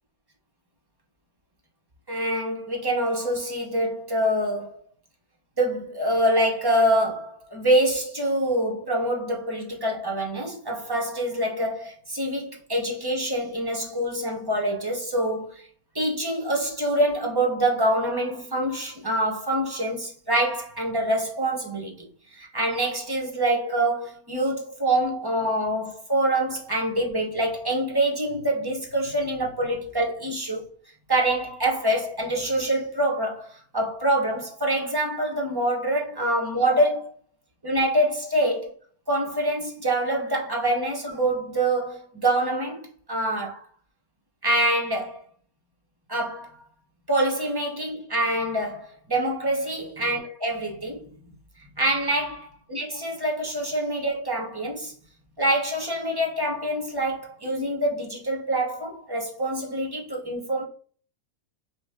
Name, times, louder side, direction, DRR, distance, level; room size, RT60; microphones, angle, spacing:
voice 1, 2.1-4.8 5.6-15.7 15.9-30.7 31.1-37.1 37.6-38.8 39.1-43.6 44.4-45.2 46.1-46.5 47.1-51.3 51.6-54.9 55.4-60.6, right 1 dB, 20° right, 0.9 m, -25 dB
6.0 x 2.4 x 3.5 m
omnidirectional pair, 1.6 m